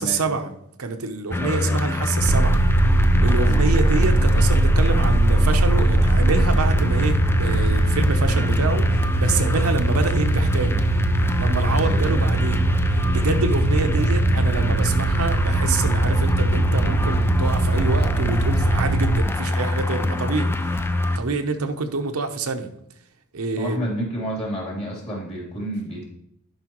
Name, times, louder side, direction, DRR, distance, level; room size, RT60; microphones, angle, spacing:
voice 1, 0.0-2.6 3.2-10.8 11.4-20.7 21.2-22.7 23.3-23.9, right 3 dB, 90° right, 6 dB, 0.8 m, -27 dB
sound 1, 1.3-21.2, left 2 dB, 10° left, 0.3 m, -24 dB
voice 2, 1.4-1.9 3.4-3.7 11.7-12.0 23.6-26.1, equal, 30° left, -3 dB, 3.0 m, -30 dB
sound 2, 2.2-19.2, right 3 dB, 45° right, 0.5 m, -21 dB
11.0 x 5.4 x 3.0 m, 0.73 s
head